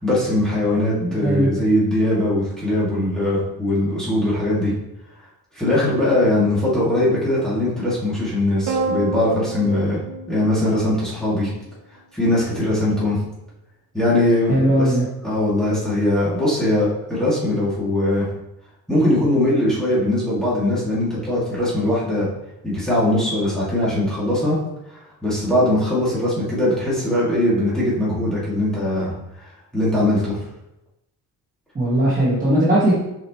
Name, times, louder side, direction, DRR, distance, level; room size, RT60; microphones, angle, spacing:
voice 1, 0.0-4.7 5.6-10.0 10.3-11.5 12.1-13.2 13.9-15.0 15.2-18.3 18.9-22.3 22.6-24.6 24.9-29.1 29.7-30.4, left 1 dB, ahead, -9 dB, 2.6 m, -20 dB
voice 2, 1.0-1.5 14.5-15.1 31.7-32.9, right 1 dB, 20° right, -8 dB, 1.7 m, -18 dB
sound 1, 8.7-11.3, right 3 dB, 50° right, 1.2 m, -28 dB
7.7 x 5.1 x 3.2 m, 0.87 s
cardioid pair, 155°, 37 cm